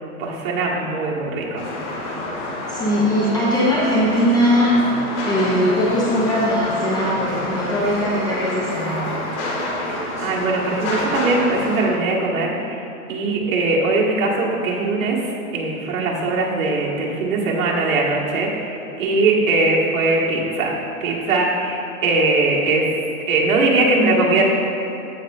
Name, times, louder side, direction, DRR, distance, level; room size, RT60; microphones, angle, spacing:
voice 1, 0.2-1.6 9.9-15.3 15.5-20.8 21.0-22.9 23.3-24.4, right 3 dB, 60° right, -3 dB, 1.7 m, -20 dB
sound 1, 1.6-11.9, left 1 dB, 50° left, 1.9 m, -28 dB
voice 2, 2.7-4.8 5.2-9.0, equal, 10° left, -6 dB, 0.6 m, -20 dB
15.5 x 5.4 x 2.5 m, 2.9 s
hypercardioid pair, 150°, 44 cm